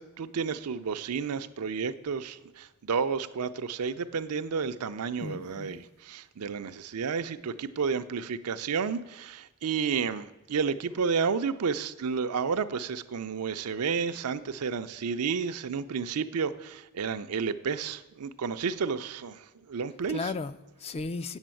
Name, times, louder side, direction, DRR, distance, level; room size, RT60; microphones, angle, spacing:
voice 1, 0.0-20.3, right 5 dB, 80° right, 0.5 m, -31 dB
voice 2, 5.2-5.9 20.1-21.4, left 4 dB, 25° left, 0.3 m, -36 dB
8.0 x 7.7 x 7.5 m
head